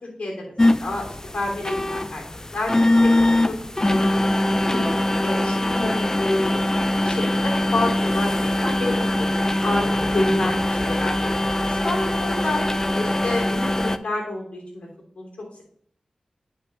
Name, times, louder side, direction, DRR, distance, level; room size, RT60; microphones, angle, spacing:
voice 1, 0.0-2.2 2.5-2.7 3.0-3.6 3.9-4.0 4.4-4.9 5.2-9.3 9.6-11.4 11.6-12.6 12.9-14.9 15.2-15.6, left 2 dB, 70° left, -1 dB, 3.1 m, -29 dB
sound 1, 0.6-14.0, left 1 dB, 25° left, 0.5 m, -22 dB
9.6 x 5.6 x 3.2 m, 0.63 s
cardioid pair, 40°, 2 cm